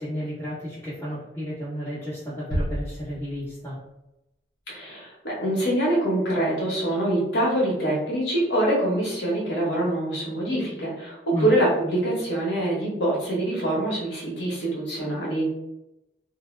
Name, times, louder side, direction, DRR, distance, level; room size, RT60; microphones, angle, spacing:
voice 1, 0.0-3.8 11.3-11.5, equal, 15° left, -13 dB, 0.8 m, -32 dB
sound 1, 2.5-3.9, equal, 60° right, 0.8 m, -31 dB
voice 2, 4.7-15.5, right 1 dB, 80° left, -5 dB, 0.9 m, -25 dB
2.1 x 2.0 x 3.1 m, 0.90 s
head